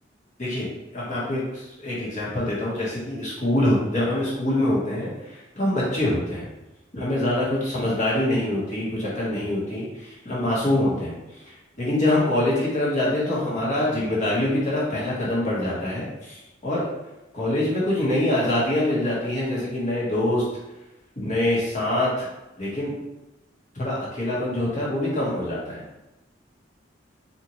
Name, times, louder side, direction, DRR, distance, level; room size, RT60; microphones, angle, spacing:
voice 1, 0.4-1.4 1.8-6.5 6.9-16.9 17.3-20.5 21.1-22.3 22.6-22.9 23.7-25.8, left 1 dB, 40° left, -7 dB, 1.5 m, -25 dB
4.3 x 2.8 x 3.1 m, 0.98 s
head